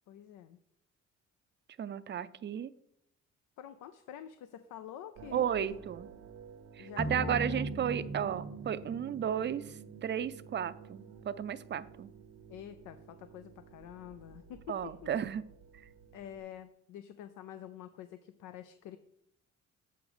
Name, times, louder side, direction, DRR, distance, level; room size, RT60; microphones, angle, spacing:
voice 1, 0.1-0.6 3.6-5.8 6.8-7.7 12.5-15.1 16.1-19.0, left 10 dB, 85° left, 11 dB, 0.5 m, -47 dB
voice 2, 1.8-2.7 5.3-6.1 6.8-9.6 10.0-12.1 14.7-15.4, right 9 dB, 35° right, 14 dB, 0.5 m, -33 dB
sound 1, 5.2-16.4, right 6 dB, 65° right, 0.9 m, -53 dB
sound 2, 7.0-11.4, right 1 dB, 5° left, 0.7 m, -40 dB
7.9 x 5.1 x 4.9 m, 0.75 s
cardioid pair, 90°, 30 cm